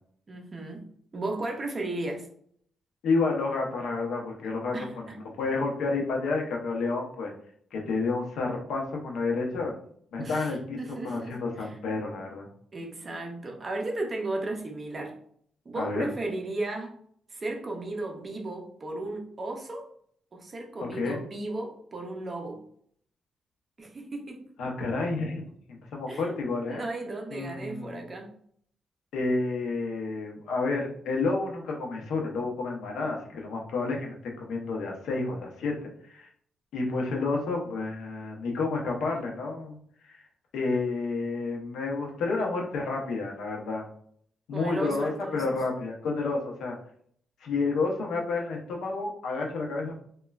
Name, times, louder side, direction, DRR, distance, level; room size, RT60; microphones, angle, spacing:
voice 1, 0.3-0.9 1.1-2.3 4.7-5.2 10.2-11.7 12.7-15.2 15.7-16.9 17.3-19.9 20.3-22.6 23.8-24.4 26.1-26.3 26.7-28.3 44.5-45.5, right 2 dB, 25° right, 2 dB, 0.4 m, -35 dB
voice 2, 3.0-5.0 5.4-7.3 7.7-9.8 10.1-12.5 15.8-16.0 20.8-21.2 24.6-26.9 27.3-28.0 29.1-35.7 36.0-36.3 36.7-39.8 40.0-40.2 40.5-43.9 44.5-46.8 47.4-49.9, left 3 dB, 85° left, 0 dB, 0.6 m, -30 dB
3.0 x 2.1 x 2.3 m, 0.63 s
wide cardioid pair, 180°, 0 cm